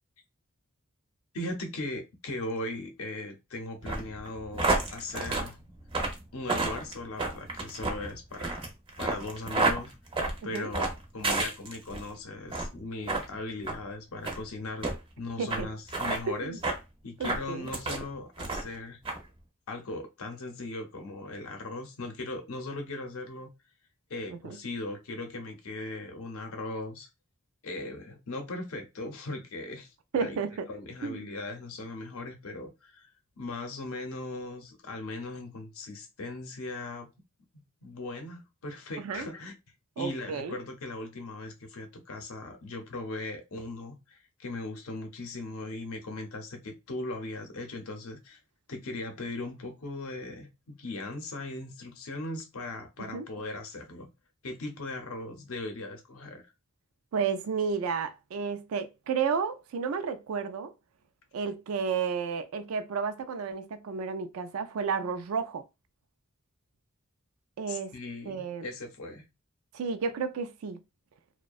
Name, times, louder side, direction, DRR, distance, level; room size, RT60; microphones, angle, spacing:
voice 1, 1.3-5.6 6.3-8.7 9.0-9.9 10.4-16.5 17.0-19.0 19.7-23.5 24.1-27.1 27.6-29.9 30.2-30.4 30.7-33.1 33.4-37.1 37.8-39.5 40.0-48.4 48.7-54.1 54.4-56.4 67.7-69.3, left 2 dB, 80° left, 0.7 m, -38 dB
sound 1, 3.8-12.1 12.5-12.8 13.1-13.3 13.6-13.8 14.2-14.4 14.8-14.9 15.5-15.6 15.9-16.2 16.6-16.8 17.2-18.0 18.4-18.8 19.1-19.2, right 3 dB, 25° right, 0.5 m, -30 dB
voice 2, 15.4-15.7 16.3-16.6 17.2-17.7 24.3-24.6 30.1-30.7 31.0-31.3 39.0-39.3 40.0-40.6 53.0-53.3 57.1-60.7 61.3-65.6 67.6-67.9 68.3-68.7 69.7-70.8, right 5 dB, 85° right, 0.4 m, -32 dB
2.6 x 2.1 x 2.3 m
head